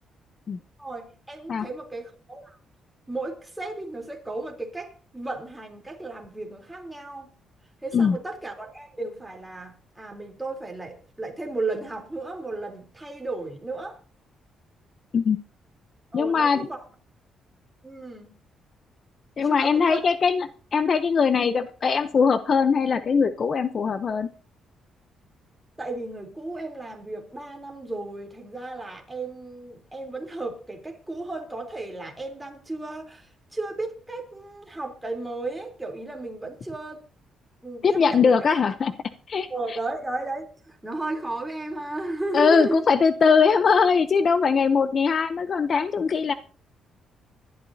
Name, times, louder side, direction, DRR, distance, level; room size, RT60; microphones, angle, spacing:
voice 1, 0.8-2.6 3.1-7.3 7.8-14.0 16.1-16.8 17.8-18.3 19.4-20.0 25.8-37.0 37.6-38.3 39.5-42.8, right 2 dB, 10° right, 3.5 m, -34 dB
voice 2, 16.1-16.7 19.4-24.3 37.8-38.9 39.3-39.5 42.3-46.3, left 5 dB, 40° left, 0.7 m, -21 dB
24.5 x 12.0 x 2.8 m
cardioid pair, 120°, 0 cm